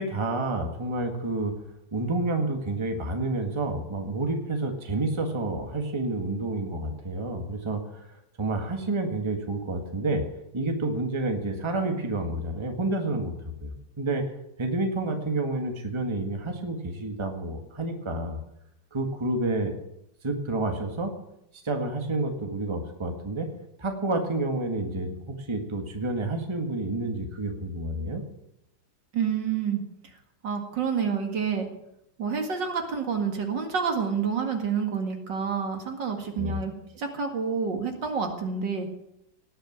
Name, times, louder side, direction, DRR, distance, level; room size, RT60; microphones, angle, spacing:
voice 1, 0.0-1.5 1.9-8.1 8.4-10.2 10.5-13.3 13.6-14.2 14.6-18.4 18.9-19.7 20.2-21.1 21.6-23.5 23.8-28.2 36.4-36.6, right 2 dB, 15° right, 4 dB, 1.6 m, -29 dB
voice 2, 29.1-29.8 30.4-31.7 32.2-38.9, right 6 dB, 65° right, 4 dB, 2.6 m, -28 dB
18.0 x 6.8 x 9.4 m, 0.81 s
omnidirectional pair, 2.1 m